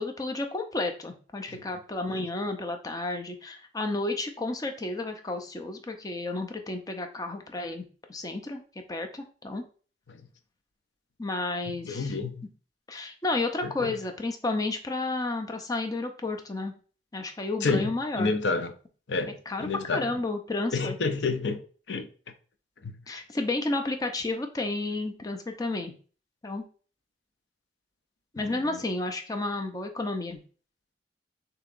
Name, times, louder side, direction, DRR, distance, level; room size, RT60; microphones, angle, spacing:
voice 1, 0.0-7.8 8.1-8.6 8.9-9.6 11.2-12.1 12.9-16.7 17.1-18.3 19.5-21.0 23.1-25.9 26.4-26.6 28.3-30.4, left 2 dB, 20° left, 0.6 m, -31 dB
voice 2, 11.9-12.4 13.6-13.9 17.6-17.9 18.2-18.7 19.1-19.3 19.6-20.1 20.7-21.6 21.9-22.1 28.5-28.8, left 3 dB, 90° left, 0.6 m, -29 dB
6.7 x 2.9 x 2.5 m
head